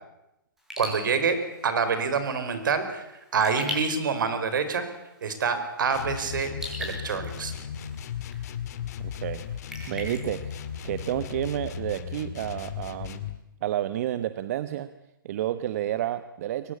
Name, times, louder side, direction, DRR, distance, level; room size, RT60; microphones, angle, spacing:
Raindrop / Drip, 0.6-11.3, left 1 dB, 5° right, 7.4 m, -42 dB
voice 1, 0.8-1.4 1.6-3.0 3.3-4.9 5.2-6.5 6.8-7.5, right 5 dB, 65° right, 10 dB, 5.2 m, -26 dB
sound 1, 5.9-13.4, left 8 dB, 45° left, 2.2 m, -36 dB
voice 2, 9.0-9.5 9.9-13.2 13.6-14.9 15.2-16.7, right 12 dB, 45° right, 13 dB, 1.1 m, -30 dB
23.5 x 19.5 x 8.6 m, 0.91 s
hypercardioid pair, 140°, 12 cm